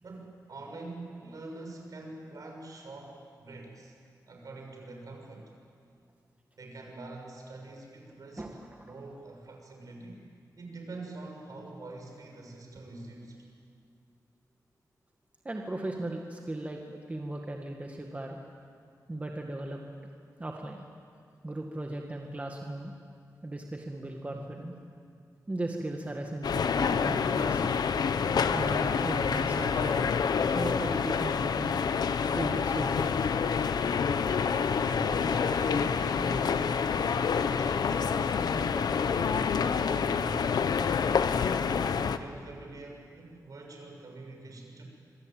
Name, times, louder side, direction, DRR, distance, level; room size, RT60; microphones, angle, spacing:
voice 1, 0.0-3.9 4.3-5.5 6.5-8.5 8.7-10.2 10.6-13.4 34.8-37.1 37.4-40.5 41.3-44.8, right 2 dB, 60° right, 2 dB, 6.5 m, -44 dB
voice 2, 15.4-18.4 19.1-19.8 20.4-20.9 21.4-22.9 23.4-24.7 25.5-27.7 28.5-30.1 30.5-31.8 32.1-33.2, right 1 dB, 20° right, 1 dB, 2.0 m, -37 dB
sound 1, 26.4-42.2, left 6 dB, 85° left, 1.0 m, -27 dB
26.5 x 24.0 x 9.1 m, 2.2 s
wide cardioid pair, 115°, 7 cm